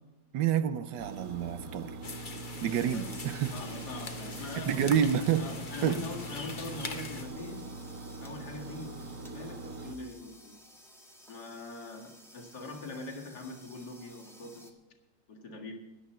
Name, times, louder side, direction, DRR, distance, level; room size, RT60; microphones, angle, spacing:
voice 1, 0.3-2.0 2.6-3.5 4.6-5.5 5.8-6.0, right 9 dB, 80° right, 12 dB, 1.4 m, -28 dB
sound 1, 1.0-10.0, right 3 dB, 55° right, 1.8 m, -43 dB
sound 2, 2.0-7.2, left 4 dB, 35° left, 1.0 m, -43 dB
sound 3, 2.9-14.7, equal, ahead, 1.2 m, -55 dB
voice 2, 3.5-5.0 5.4-7.8 8.2-10.6 11.3-14.7 15.3-15.7, left 3 dB, 65° left, 1 dB, 2.5 m, -42 dB
16.5 x 11.0 x 4.4 m, 1.1 s
omnidirectional pair, 1.9 m